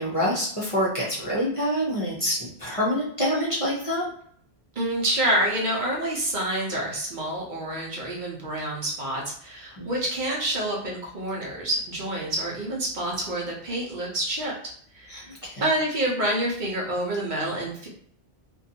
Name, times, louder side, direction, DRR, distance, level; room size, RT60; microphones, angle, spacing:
voice 1, 0.0-4.0 9.8-9.9 15.1-15.7, equal, 40° left, -6 dB, 0.6 m, -26 dB
voice 2, 4.8-14.5 14.9-15.3 15.6-17.9, right 1 dB, 55° right, -3 dB, 0.7 m, -27 dB
2.6 x 2.2 x 2.6 m, 0.62 s
omnidirectional pair, 1.1 m